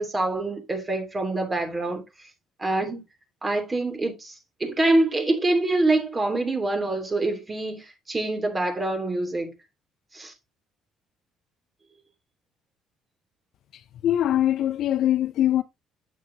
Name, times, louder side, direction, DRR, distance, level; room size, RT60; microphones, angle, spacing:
voice 1, 0.0-2.0 2.6-3.0 3.4-9.5 10.1-10.3, right 2 dB, 25° right, 3.1 m, -25 dB
voice 2, 14.0-15.6, left 12 dB, 65° left, 0.5 m, -22 dB
8.2 x 7.9 x 2.9 m
supercardioid pair, 75°, 0 cm